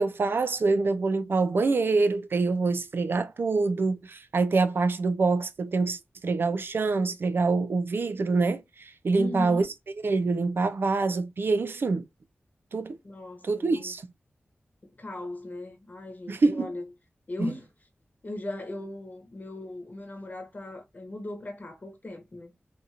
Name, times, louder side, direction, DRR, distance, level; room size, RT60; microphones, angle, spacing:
voice 1, 0.0-9.7 10.0-12.0 12.7-13.0 13.4-14.0 16.3-16.7 17.4-17.5, right 3 dB, 65° right, 0.4 m, -25 dB
voice 2, 9.1-9.7 13.0-13.9 14.8-16.8 17.3-17.7 18.2-22.5, left 2 dB, 45° left, 1.0 m, -38 dB
2.8 x 2.6 x 2.4 m
cardioid pair, 50°, 4 cm